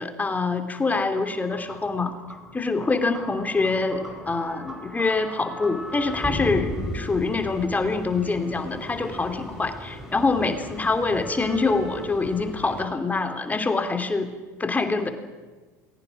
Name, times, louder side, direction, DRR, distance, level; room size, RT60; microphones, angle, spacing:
voice 1, 0.0-2.2 2.5-14.3 14.6-15.1, left 3 dB, 15° left, 8 dB, 2.7 m, -25 dB
sound 1, 1.3-12.9, equal, 5° right, 5.0 m, -36 dB
29.0 x 21.0 x 6.3 m, 1.3 s
hypercardioid pair, 75°, 9 cm